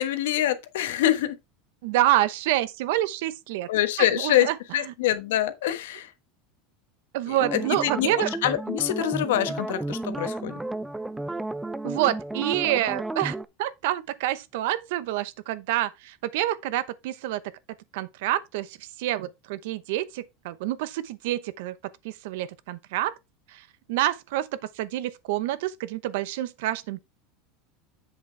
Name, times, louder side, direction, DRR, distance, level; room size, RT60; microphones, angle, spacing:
voice 1, 0.0-1.4 3.7-6.1 7.3-8.1 8.4-10.5, left 12 dB, 85° left, 1.2 m, -25 dB
voice 2, 1.8-3.7 4.0-4.9 7.1-8.3 11.8-17.4 17.9-21.7 22.0-23.1 23.5-24.5 24.7-27.0, right 14 dB, 75° right, 0.8 m, -27 dB
sound 1, 7.4-13.4, right 2 dB, 5° right, 0.5 m, -32 dB
8.0 x 6.6 x 3.3 m
supercardioid pair, 135°, 0 cm